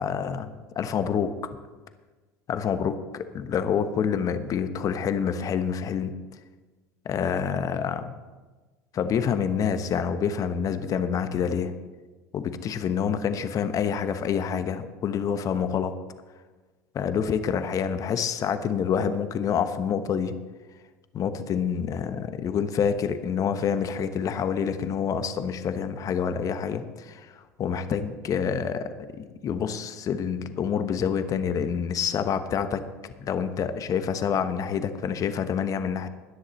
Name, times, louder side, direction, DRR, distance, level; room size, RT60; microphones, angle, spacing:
voice 1, 0.0-1.3 2.5-6.2 7.0-8.1 8.9-11.7 12.3-15.9 16.9-20.3 21.1-36.1, left 7 dB, 40° left, 10 dB, 1.1 m, -27 dB
20.5 x 10.0 x 3.2 m, 1.3 s
hypercardioid pair, 70°, 9 cm